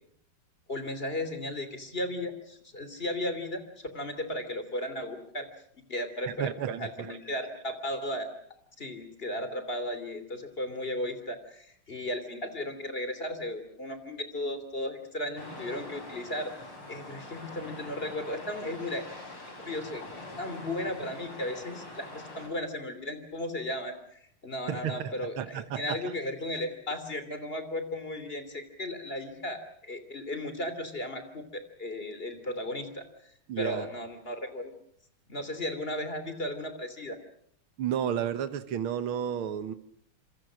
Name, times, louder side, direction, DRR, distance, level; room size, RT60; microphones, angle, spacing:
voice 1, 0.7-5.5 5.8-6.5 6.8-8.3 8.8-16.5 16.9-19.0 19.6-20.0 20.4-33.0 33.6-34.7 35.3-37.2, left 1 dB, 25° left, 10 dB, 3.1 m, -35 dB
voice 2, 6.3-7.2 24.7-26.1 33.5-33.9 37.8-39.7, right 9 dB, 75° right, 10 dB, 2.1 m, -32 dB
sound 1, 15.4-22.5, left 2 dB, 90° left, 7.5 m, -44 dB
27.0 x 26.5 x 6.3 m, 0.66 s
omnidirectional pair, 2.3 m